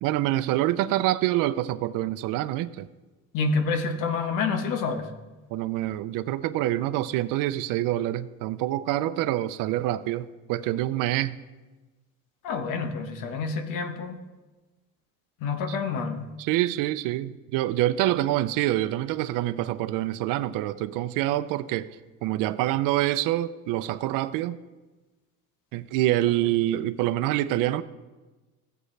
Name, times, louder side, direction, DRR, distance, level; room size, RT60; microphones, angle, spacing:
voice 1, 0.0-2.9 5.5-11.4 15.7-15.8 16.4-21.9 22.2-24.6 25.7-27.8, right 14 dB, 90° right, 14 dB, 0.6 m, -26 dB
voice 2, 3.3-5.1 12.4-14.2 15.4-16.3, left 4 dB, 80° left, 6 dB, 1.2 m, -28 dB
16.0 x 7.8 x 3.3 m, 1.2 s
cardioid pair, 175°, 32 cm